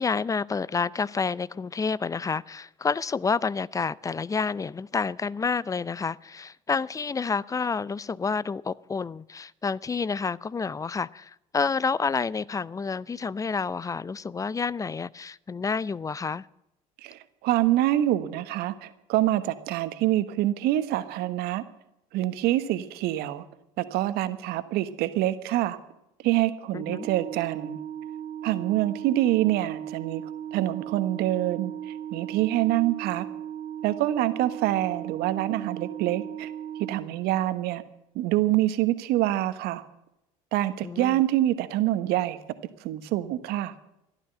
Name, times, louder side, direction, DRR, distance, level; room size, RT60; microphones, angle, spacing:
voice 1, 0.0-16.5 26.7-27.1 40.8-41.2, left 5 dB, 20° left, 0.5 m, -29 dB
voice 2, 17.0-21.6 22.1-23.4 23.8-25.8 26.2-27.8 28.4-30.2 30.5-33.3 33.8-36.5 36.8-37.8 38.1-39.8 40.5-42.4 42.8-43.7, right 14 dB, 60° right, 1.2 m, -26 dB
Organ, 26.7-37.6, right 10 dB, 45° right, 0.9 m, -37 dB
15.0 x 12.0 x 7.8 m
hypercardioid pair, 65°, 18 cm